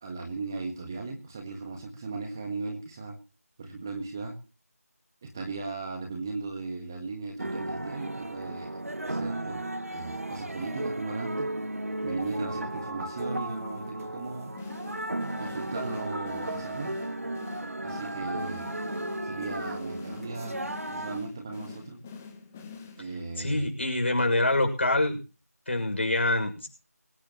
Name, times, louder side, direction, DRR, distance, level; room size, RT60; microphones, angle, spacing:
voice 1, 0.0-3.2 3.6-4.3 5.2-8.7 9.1-9.6 9.9-11.5 12.0-14.5 15.4-17.0 17.8-18.7 19.2-22.0 23.0-23.7, right 3 dB, 15° right, 2 dB, 1.5 m, -37 dB
sound 1, 7.4-21.2, right 1 dB, 60° right, 2.1 m, -35 dB
sound 2, 14.6-23.4, left 5 dB, 5° left, 1.1 m, -45 dB
voice 2, 23.4-25.2 25.7-26.7, left 2 dB, 45° left, 4 dB, 6.4 m, -25 dB
21.5 x 17.5 x 3.1 m, 0.34 s
figure-of-eight pair, 170°, 9 cm